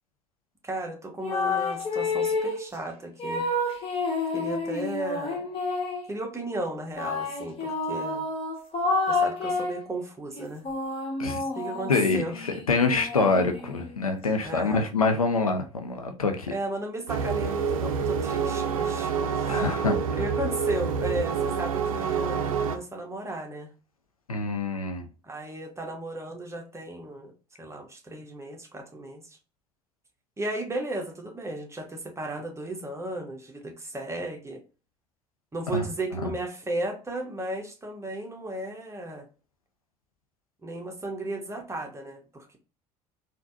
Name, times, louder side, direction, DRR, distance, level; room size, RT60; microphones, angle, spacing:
voice 1, 0.6-3.5 4.3-5.5 6.1-8.3 9.1-10.6 11.5-12.4 14.4-14.9 16.5-19.6 20.1-23.7 25.2-27.3 27.6-29.4 30.4-34.6 35.5-39.3 40.6-42.6, right 2 dB, 15° right, 1.0 m, -35 dB
sound 1, 1.2-2.7 3.2-6.1 7.0-9.9 10.4-14.0, left 3 dB, 30° left, 1.2 m, -29 dB
voice 2, 11.9-16.5 19.5-20.2 24.3-25.1 35.7-35.9 36.2-36.3, left 3 dB, 85° left, 0.5 m, -26 dB
sound 2, 17.1-22.8, right 6 dB, 75° right, 0.4 m, -27 dB
3.8 x 2.2 x 2.6 m
figure-of-eight pair, 60°, 18 cm